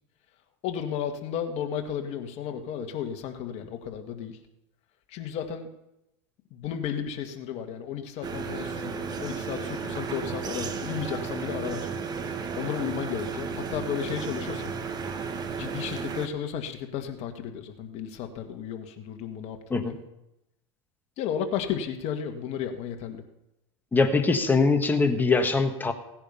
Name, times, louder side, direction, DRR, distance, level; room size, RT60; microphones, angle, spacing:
voice 1, 0.6-4.4 5.1-5.7 6.5-11.9 12.2-14.7 15.3-20.0 21.2-23.2, left 8 dB, 45° left, 5 dB, 1.9 m, -33 dB
sound 1, 8.2-16.3, right 5 dB, 25° right, 1.2 m, -33 dB
voice 2, 23.9-25.9, left 4 dB, 10° left, 5 dB, 1.5 m, -22 dB
17.0 x 9.8 x 5.7 m, 0.89 s
supercardioid pair, 125°, 15 cm